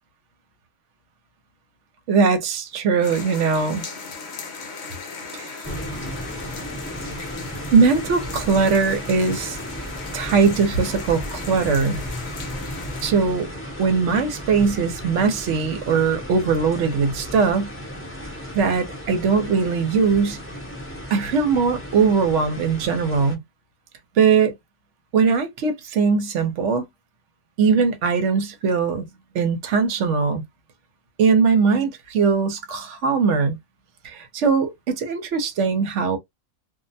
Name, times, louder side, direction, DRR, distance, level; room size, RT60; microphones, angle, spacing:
voice 1, 2.1-3.8 5.3-5.6 7.7-9.6 10.1-12.0 13.0-13.5 13.8-17.7 18.5-20.4 21.1-23.4 24.2-24.5 25.1-26.9 27.6-29.1 29.3-30.4 31.2-33.6 34.0-36.2, right 5 dB, 65° right, 0.9 m, -20 dB
sound 1, 3.0-13.1, left 4 dB, 60° left, 0.8 m, -37 dB
sound 2, 5.6-23.3, equal, 10° left, 0.7 m, -34 dB
2.4 x 2.1 x 2.6 m
omnidirectional pair, 1.4 m